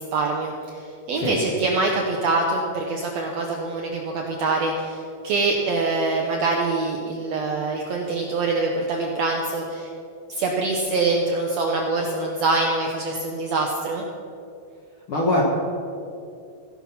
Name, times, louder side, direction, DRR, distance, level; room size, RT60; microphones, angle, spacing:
voice 1, 0.0-9.9 10.3-14.0, right 3 dB, 75° right, 1 dB, 1.6 m, -24 dB
voice 2, 15.1-15.4, left 1 dB, 60° left, -3 dB, 1.5 m, -22 dB
16.5 x 5.8 x 5.7 m, 2.5 s
omnidirectional pair, 4.0 m